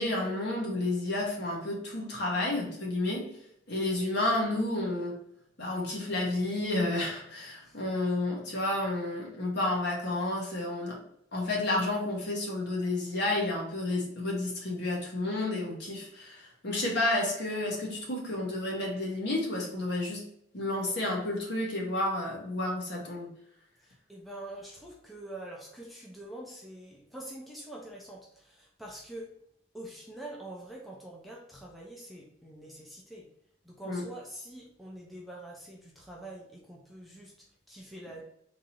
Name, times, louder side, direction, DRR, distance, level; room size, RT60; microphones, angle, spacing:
voice 1, 0.0-3.3 3.7-5.2 5.6-11.0 11.3-20.2 20.5-23.3 33.8-34.0, left 2 dB, 55° left, -2 dB, 1.3 m, -31 dB
voice 2, 23.8-29.3 29.7-33.3 33.6-38.2, right 1 dB, ahead, -3 dB, 0.6 m, -45 dB
3.8 x 2.9 x 4.2 m, 0.72 s
head